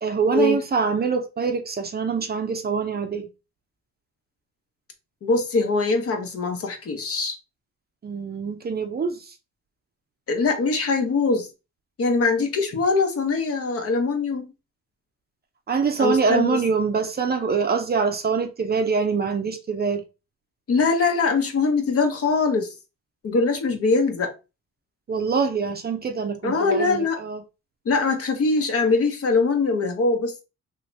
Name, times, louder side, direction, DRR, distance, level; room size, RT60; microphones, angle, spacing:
voice 1, 0.0-3.3 8.0-9.3 15.7-20.0 25.1-27.4, right 5 dB, 30° right, 0.5 m, -24 dB
voice 2, 5.2-7.4 10.3-11.5 12.0-14.5 16.0-16.6 20.7-22.7 23.2-24.3 26.4-27.2 27.8-30.4, left 3 dB, 50° left, 0.8 m, -22 dB
2.8 x 2.6 x 3.2 m
cardioid pair, 90°, 30 cm